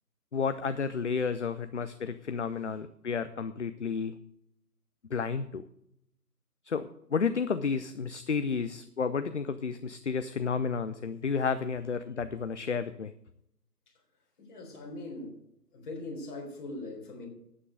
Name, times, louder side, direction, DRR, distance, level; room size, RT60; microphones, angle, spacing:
voice 1, 0.3-4.2 5.1-5.6 6.7-13.1, left 5 dB, 45° left, 13 dB, 0.5 m, -31 dB
voice 2, 14.4-15.4 15.7-17.3, left 2 dB, 30° left, -1 dB, 4.1 m, -41 dB
11.0 x 8.8 x 6.6 m, 0.78 s
figure-of-eight pair, 140°, 49 cm